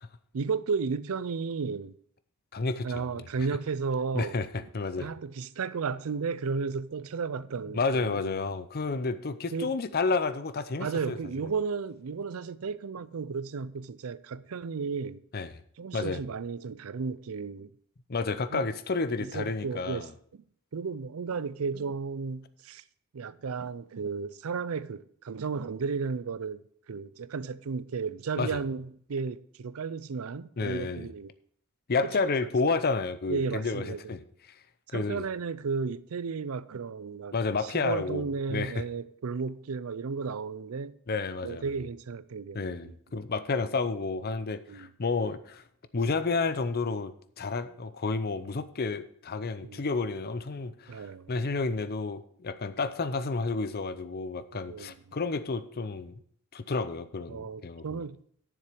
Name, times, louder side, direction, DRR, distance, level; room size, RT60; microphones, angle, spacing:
voice 1, 0.3-2.0 2.8-4.4 5.0-8.4 9.5-9.7 10.8-15.2 15.8-17.7 18.5-18.7 19.2-20.4 20.7-22.8 23.1-31.3 33.3-34.0 34.9-37.3 37.6-41.0 41.4-43.2 44.7-44.9 49.6-49.8 50.9-51.4 54.5-55.0 57.3-58.2, right 5 dB, 85° right, 0.5 m, -34 dB
voice 2, 2.5-3.0 4.1-5.1 7.7-11.2 15.3-15.5 15.9-16.2 18.1-20.1 28.4-28.6 30.6-31.1 31.9-34.2 34.9-35.2 37.3-38.8 41.1-41.6 42.5-45.6 45.9-56.1 56.5-58.0, left 4 dB, 45° left, 0.6 m, -31 dB
9.7 x 7.2 x 5.1 m
head